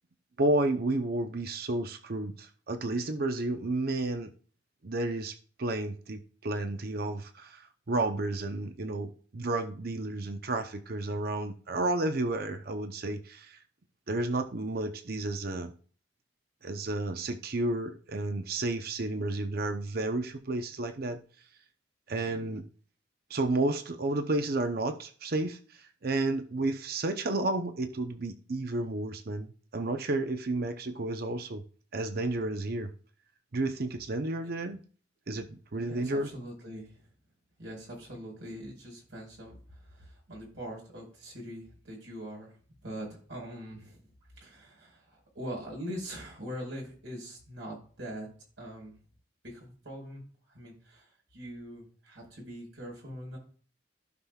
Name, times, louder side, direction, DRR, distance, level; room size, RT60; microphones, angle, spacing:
voice 1, 0.4-4.3 4.8-13.6 14.1-15.7 16.6-21.2 22.1-22.6 23.3-31.6 31.9-32.9 33.5-34.8 35.3-36.3, right 2 dB, 50° right, 0.7 m, -31 dB
voice 2, 35.9-37.0 37.6-42.6 42.8-44.0 44.3-48.3 48.6-48.9 49.4-50.2 50.5-53.4, equal, 75° right, 4.8 m, -42 dB
15.5 x 5.7 x 2.3 m
head